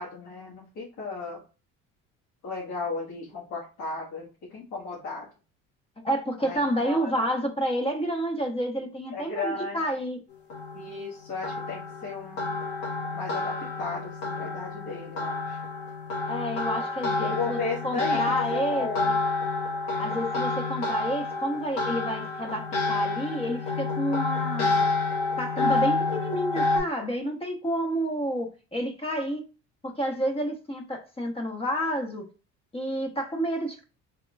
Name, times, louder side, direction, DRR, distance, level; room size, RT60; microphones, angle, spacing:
voice 1, 0.0-1.4 2.4-5.3 6.4-7.2 9.1-9.8 10.7-12.6 13.1-15.6 17.2-19.1, left 4 dB, 55° left, 1.6 m, -35 dB
voice 2, 6.0-10.2 16.2-17.6 17.8-19.2 20.0-24.8 25.4-29.4 29.8-32.3 32.7-33.8, equal, 15° left, 0.9 m, -29 dB
sound 1, 10.3-26.8, left 3 dB, 80° left, 1.3 m, -29 dB
3.6 x 2.9 x 2.3 m
hypercardioid pair, 65°, 34 cm